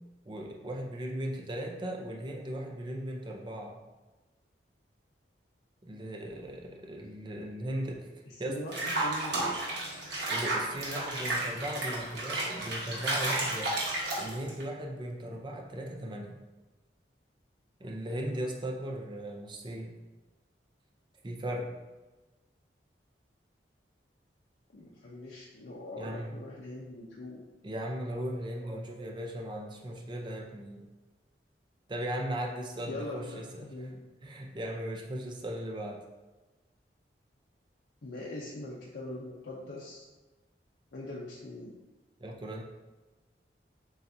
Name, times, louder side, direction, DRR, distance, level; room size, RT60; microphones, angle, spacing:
voice 1, 0.3-3.8 5.8-8.1 8.4-8.6 10.3-13.8 14.2-16.4 17.8-19.9 21.2-21.7 26.0-26.3 27.6-30.8 31.9-33.9 34.2-36.0 42.2-42.6, right 1 dB, 25° right, 0 dB, 0.5 m, -37 dB
voice 2, 8.3-9.5 24.7-27.4 32.9-34.0 38.0-40.0 40.9-41.8, left 2 dB, 70° left, -5 dB, 0.6 m, -42 dB
Water / Bathtub (filling or washing), 8.7-14.6, right 2 dB, 80° right, 1.1 m, -32 dB
6.9 x 2.4 x 2.6 m, 1.2 s
head